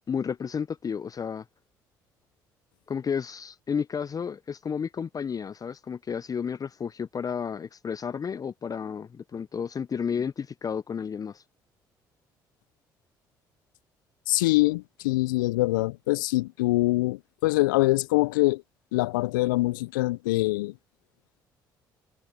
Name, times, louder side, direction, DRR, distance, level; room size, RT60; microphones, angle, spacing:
voice 1, 0.1-1.4 2.9-11.4, left 7 dB, 35° left, 0.7 m, -32 dB
voice 2, 14.3-18.6 18.9-20.7, left 20 dB, 80° left, 0.6 m, -24 dB
hypercardioid pair, 50°, 11 cm